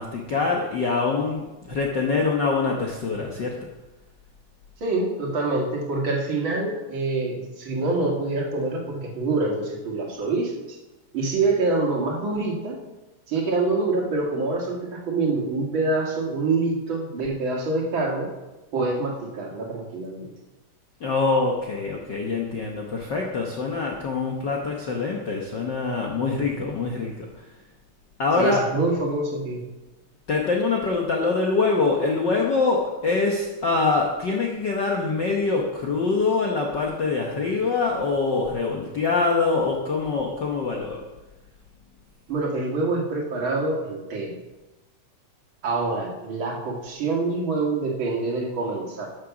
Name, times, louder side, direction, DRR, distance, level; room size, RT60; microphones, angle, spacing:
voice 1, 0.0-3.6 21.0-27.2 28.2-28.7 30.3-41.0, left 4 dB, 80° left, -1 dB, 1.0 m, -24 dB
voice 2, 4.8-10.8 11.1-12.8 13.3-18.3 18.7-20.3 28.4-29.6 42.3-44.4 45.6-49.1, right 3 dB, 40° right, -1 dB, 2.5 m, -26 dB
13.0 x 6.7 x 6.1 m, 1.1 s
omnidirectional pair, 3.7 m